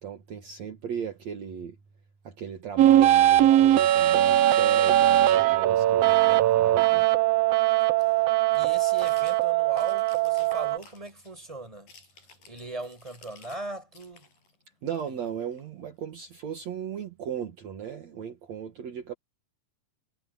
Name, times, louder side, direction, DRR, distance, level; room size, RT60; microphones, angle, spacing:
voice 1, 0.0-1.8 2.2-7.1 14.8-19.1, right 8 dB, 55° right, 3.0 m, -37 dB
sound 1, 2.8-10.8, right 13 dB, 85° right, 1.4 m, -20 dB
sound 2, 6.6-13.6 13.9-16.1, left 4 dB, 90° left, 9.9 m, -56 dB
voice 2, 8.5-11.9 12.5-14.3, right 2 dB, 10° right, 5.7 m, -39 dB
omnidirectional pair, 3.9 m